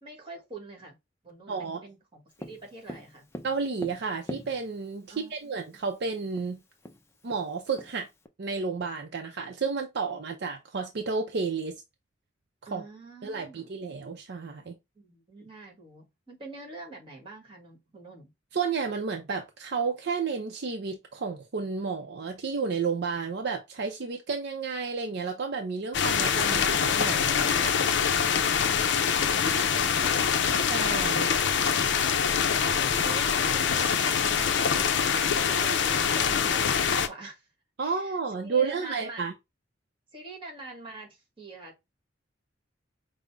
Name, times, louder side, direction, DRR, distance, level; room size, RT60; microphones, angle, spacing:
voice 1, 0.0-1.0 1.2-3.3 5.1-5.6 12.6-13.8 14.9-18.3 28.5-30.6 30.9-37.5 37.8-39.2 40.1-41.9, right 2 dB, 30° right, 1.4 m, -45 dB
voice 2, 1.5-1.8 3.4-6.6 7.2-8.1 8.4-11.8 12.7-12.8 13.2-14.7 18.5-27.7 29.9-30.3 30.7-31.3 37.8-39.3, right 5 dB, 60° right, 0.5 m, -31 dB
Tap, 2.4-5.0 6.0-6.1 6.4-6.5 6.8-8.3, left 1 dB, 15° left, 0.4 m, -42 dB
sound 1, 25.9-37.1, left 7 dB, 65° left, 0.5 m, -24 dB
5.1 x 2.1 x 3.3 m
head